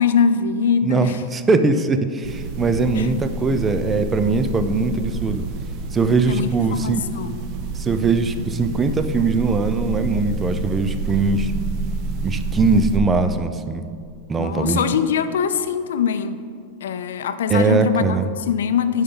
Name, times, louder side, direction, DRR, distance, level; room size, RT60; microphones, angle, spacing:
voice 1, 0.0-1.2 2.9-3.1 6.3-7.4 14.4-16.4 16.8-19.0, left 7 dB, 90° left, 12 dB, 0.4 m, -22 dB
voice 2, 0.8-5.4 5.9-7.0 7.7-11.5 12.2-13.8 14.3-14.8 17.5-18.3, right 4 dB, 20° right, 9 dB, 0.5 m, -21 dB
sound 1, 2.2-13.0, right 3 dB, 50° right, 0.9 m, -28 dB
10.0 x 5.3 x 3.9 m, 2.2 s
supercardioid pair, 125°, 0 cm